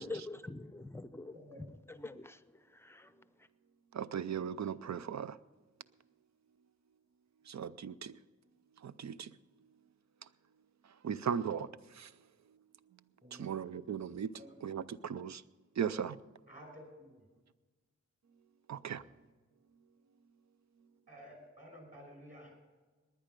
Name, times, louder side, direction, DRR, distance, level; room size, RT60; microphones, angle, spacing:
voice 1, 0.0-3.1, left 2 dB, 10° left, 0.6 m, -46 dB
voice 2, 1.3-1.6 13.2-13.5 14.3-14.6 16.5-17.2 18.9-19.0 21.1-22.5, equal, 25° right, 5.1 m, -53 dB
voice 3, 3.9-5.4 7.5-8.2 8.8-9.3 11.0-12.1 13.3-14.3 14.6-15.4 15.8-16.2 18.7-19.0, right 8 dB, 65° right, 0.5 m, -37 dB
19.5 x 9.9 x 5.2 m
wide cardioid pair, 90°, 30 cm